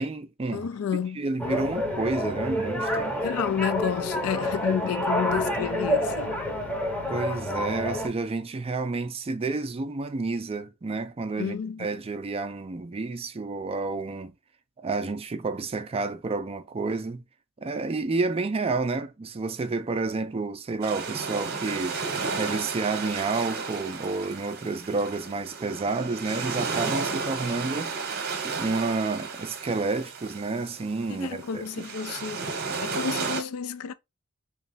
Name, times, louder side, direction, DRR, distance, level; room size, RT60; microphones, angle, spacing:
voice 1, 0.0-0.7 1.2-3.1 7.1-14.3 14.8-17.2 17.6-22.0 22.4-28.0 28.4-31.7, right 3 dB, 25° right, 0.4 m, -30 dB
voice 2, 0.5-1.2 3.2-6.4 11.4-11.9 31.1-32.4 32.8-33.9, left 7 dB, 70° left, 0.4 m, -30 dB
sound 1, 1.4-8.1, left 1 dB, 5° left, 0.7 m, -28 dB
sound 2, 20.8-33.4, right 4 dB, 45° right, 0.9 m, -33 dB
3.1 x 2.4 x 4.0 m
head